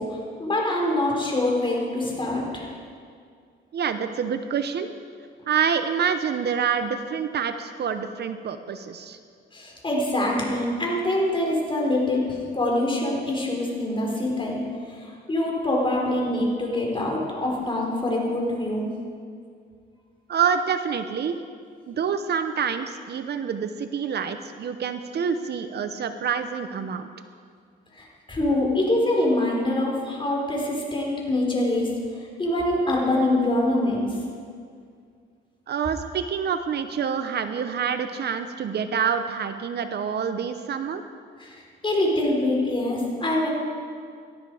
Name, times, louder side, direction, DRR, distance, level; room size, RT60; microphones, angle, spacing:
voice 1, 0.0-2.7 9.5-18.9 27.9-31.9 32.2-34.1 41.4-43.5, left 1 dB, 25° left, -2 dB, 4.8 m, -25 dB
voice 2, 3.7-4.9 5.5-9.2 20.3-21.4 21.9-27.1 35.7-41.0, right 7 dB, 55° right, 9 dB, 0.9 m, -27 dB
18.5 x 12.5 x 5.0 m, 2.2 s
cardioid pair, 90°, 20 cm